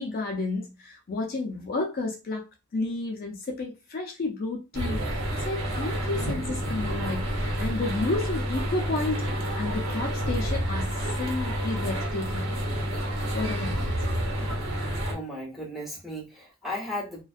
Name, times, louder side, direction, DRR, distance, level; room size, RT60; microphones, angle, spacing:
voice 1, 0.0-2.4 2.7-10.9 11.2-12.5 13.3-13.8, left 3 dB, 45° left, 0.4 m, -31 dB
sound 1, 4.7-15.1, equal, 80° right, 0.9 m, -29 dB
voice 2, 15.1-17.2, left 1 dB, ahead, 1.0 m, -35 dB
2.3 x 2.2 x 2.4 m
head